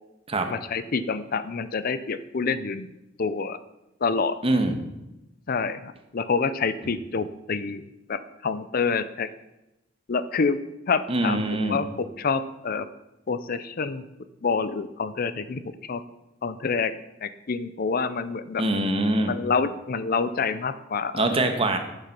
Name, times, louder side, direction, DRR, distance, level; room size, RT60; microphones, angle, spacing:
voice 1, 0.5-2.9 3.2-3.6 4.0-4.4 5.5-9.3 10.1-10.6 10.9-11.4 11.7-12.9 13.3-14.0 14.4-16.0 16.4-16.9 17.2-18.6 19.3-21.2, left 5 dB, 50° left, 13 dB, 0.5 m, -27 dB
voice 2, 4.4-4.8 11.1-11.8 18.6-19.3 21.1-21.8, right 1 dB, 30° right, 6 dB, 1.4 m, -23 dB
10.5 x 8.0 x 6.0 m, 0.94 s
head